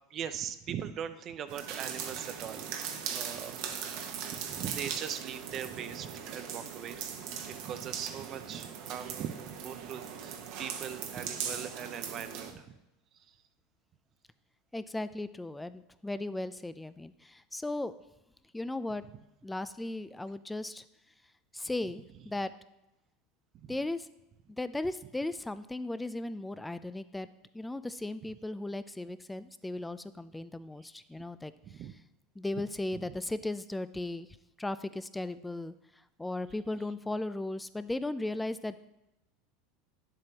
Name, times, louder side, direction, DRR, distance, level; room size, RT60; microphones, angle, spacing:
voice 1, 0.1-2.8 3.1-4.0 4.3-7.1 7.5-12.8 13.1-13.4 23.5-23.8 30.8-30.9 31.6-32.0 32.9-33.2, right 9 dB, 40° right, 11 dB, 0.5 m, -41 dB
sound 1, 1.5-12.5, right 7 dB, 65° right, 1.1 m, -39 dB
voice 2, 14.7-17.9 18.5-19.0 19.4-20.8 21.5-22.5 23.7-24.1 24.5-27.3 27.5-31.5 32.4-34.3 34.6-35.7 36.2-38.8, left 2 dB, 10° left, 14 dB, 0.4 m, -36 dB
9.6 x 7.6 x 2.9 m, 0.93 s
supercardioid pair, 105°, 0 cm